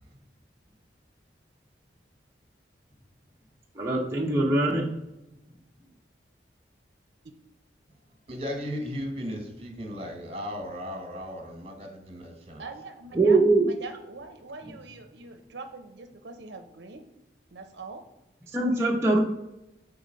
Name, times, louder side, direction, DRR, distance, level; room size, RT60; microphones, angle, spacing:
voice 1, 3.7-4.9 13.1-13.7 18.5-19.2, right 2 dB, 15° right, -3 dB, 0.7 m, -22 dB
voice 2, 8.3-12.6 13.1-13.2, equal, 30° right, 4 dB, 1.3 m, -36 dB
voice 3, 12.6-13.4 13.6-17.0 17.5-18.0, right 3 dB, 70° right, 6 dB, 0.6 m, -43 dB
6.9 x 4.0 x 5.1 m, 0.93 s
head